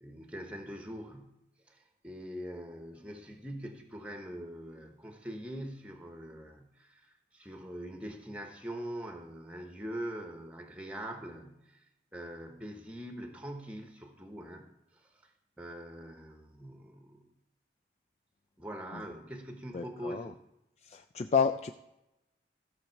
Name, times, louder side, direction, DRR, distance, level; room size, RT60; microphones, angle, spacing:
voice 1, 0.0-1.4 1.7-11.9 12.1-14.7 14.9-15.3 15.6-17.3 18.6-20.4, equal, 5° right, 4 dB, 1.0 m, -43 dB
voice 2, 19.7-20.3 20.8-21.7, left 6 dB, 35° left, 8 dB, 0.3 m, -30 dB
14.5 x 6.4 x 4.5 m, 0.90 s
head